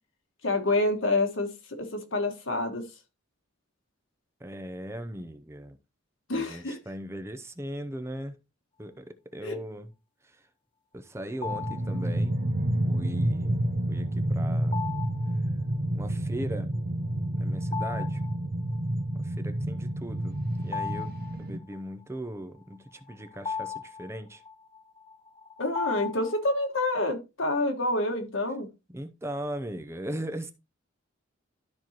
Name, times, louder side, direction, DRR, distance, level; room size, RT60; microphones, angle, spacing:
voice 1, 0.4-2.8 6.3-6.8 9.4-9.6 25.6-28.7, left 2 dB, 70° left, 1.6 m, -28 dB
voice 2, 4.4-5.8 6.3-8.3 8.8-9.9 10.2-10.4 10.9-12.4 12.9-13.6 13.9-14.8 15.9-16.7 17.3-18.2 19.1-21.1 21.4-24.4 28.9-30.5, right 1 dB, 15° right, 0.6 m, -38 dB
sound 1, 11.4-12.1 14.7-15.4 17.6-18.4 18.7-18.8 20.3-21.8 22.7-26.7, left 6 dB, 25° left, 0.5 m, -37 dB
sound 2, 11.4-21.6, right 1 dB, 50° right, 0.9 m, -29 dB
12.5 x 4.5 x 2.9 m
head